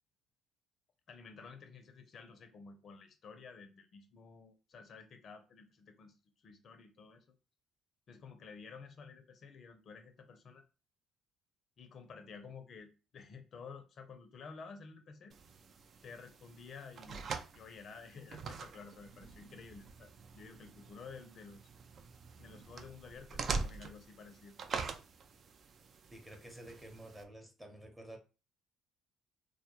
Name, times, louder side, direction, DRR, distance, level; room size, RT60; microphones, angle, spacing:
voice 1, 1.1-7.3 8.1-10.6 11.8-15.4 16.0-17.2 17.5-21.6 22.4-24.5, left 5 dB, 55° left, 0.5 m, -52 dB
sound 1, 15.3-27.2, right 4 dB, 50° right, 0.3 m, -44 dB
voice 2, 26.1-28.2, right 1 dB, 10° right, 0.8 m, -51 dB
2.2 x 2.1 x 2.8 m
supercardioid pair, 75°, 0 cm